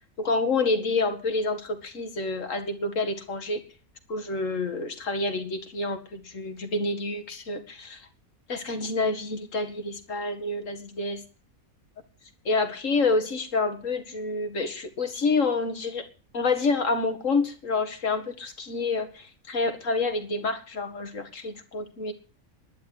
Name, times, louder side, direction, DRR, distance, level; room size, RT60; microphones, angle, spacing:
voice 1, 0.2-3.6 4.1-8.0 8.5-11.2 12.5-16.1 16.3-22.1, left 3 dB, 55° left, 8 dB, 2.3 m, -28 dB
11.5 x 10.0 x 8.0 m, 0.36 s
omnidirectional pair, 1.6 m